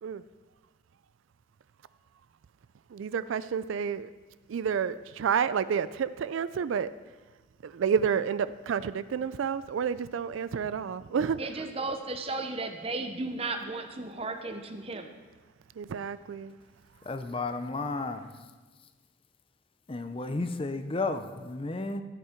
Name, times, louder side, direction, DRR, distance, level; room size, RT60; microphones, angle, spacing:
voice 1, 2.9-4.1 4.5-6.9 7.6-11.4 15.8-16.6, right 7 dB, 80° right, 15 dB, 0.3 m, -30 dB
voice 2, 11.4-15.1, right 3 dB, 30° right, 7 dB, 0.8 m, -34 dB
voice 3, 17.1-18.3 19.9-22.0, left 3 dB, 25° left, 9 dB, 0.5 m, -32 dB
13.0 x 8.1 x 4.5 m, 1.3 s
head